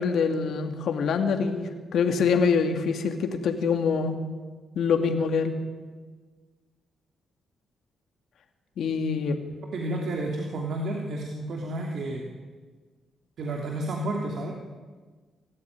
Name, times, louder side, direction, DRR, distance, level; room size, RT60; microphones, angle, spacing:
voice 1, 0.0-4.2 4.7-5.5 8.8-9.4, left 5 dB, 70° left, 6 dB, 2.5 m, -25 dB
voice 2, 9.7-12.2 13.4-14.5, right 1 dB, 60° right, 0 dB, 2.9 m, -31 dB
26.5 x 14.0 x 9.6 m, 1.4 s
cardioid pair, 125°, 0 cm